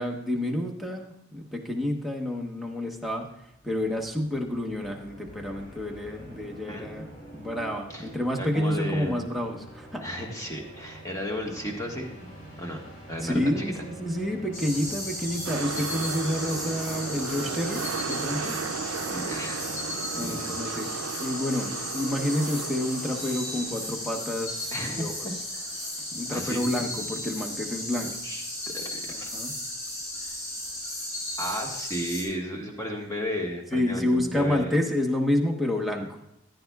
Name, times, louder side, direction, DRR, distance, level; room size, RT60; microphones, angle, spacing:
voice 1, 0.0-3.3 3.6-10.1 13.2-18.6 20.2-20.9 21.2-25.3 26.1-28.1 29.1-29.5 33.7-36.2, left 1 dB, ahead, 0 dB, 1.0 m, -29 dB
sound 1, 3.4-20.5, right 1 dB, 40° left, 2.4 m, -45 dB
voice 2, 6.7-7.1 7.9-8.0 8.4-9.2 10.0-12.1 12.6-13.7 19.1-19.7 20.1-20.6 24.7-25.7 26.3-26.6 28.2-29.3 30.2-30.4 31.4-34.7, equal, 15° left, 1 dB, 1.5 m, -34 dB
sound 2, 14.5-32.2, left 1 dB, 65° left, 4.6 m, -35 dB
sound 3, 15.4-27.5 27.8-27.9, right 6 dB, 85° right, 0.4 m, -36 dB
14.5 x 10.5 x 2.3 m, 0.82 s
head